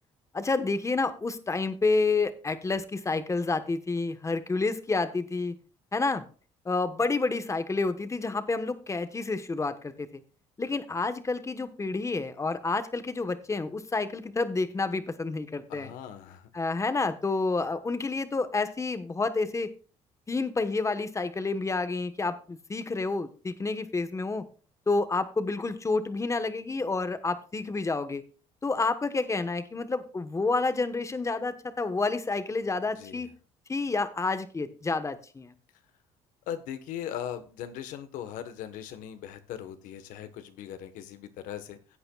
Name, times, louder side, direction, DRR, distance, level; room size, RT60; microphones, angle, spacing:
voice 1, 0.3-5.6 5.9-6.2 6.6-10.2 10.6-15.9 16.5-19.7 20.3-24.5 24.9-28.2 28.6-33.3 33.7-35.5, left 3 dB, 20° left, 11 dB, 1.2 m, -29 dB
voice 2, 15.7-16.5 33.0-33.3 36.5-42.0, left 10 dB, 85° left, 10 dB, 1.3 m, -39 dB
16.5 x 8.7 x 2.4 m, 0.38 s
cardioid pair, 90°, 13 cm